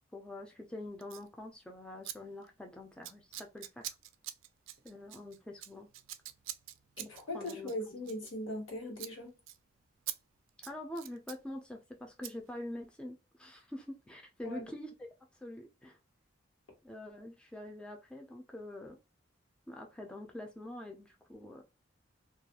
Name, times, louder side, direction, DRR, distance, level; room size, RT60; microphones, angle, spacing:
voice 1, 0.1-3.9 4.8-5.9 7.3-7.7 10.6-14.9 15.4-16.0 16.8-19.0 19.7-21.6, left 1 dB, 5° left, 0.3 m, -45 dB
Scissors, 1.0-1.3 2.0-2.2 2.4-2.7 3.0-8.7 8.9-9.1 9.5-9.6 10.1-10.2 10.5-11.4 12.2-12.3, right 13 dB, 80° right, 0.3 m, -45 dB
voice 2, 7.0-9.3 14.4-14.7, left 1 dB, 80° left, 1.2 m, -40 dB
2.3 x 2.2 x 2.7 m
head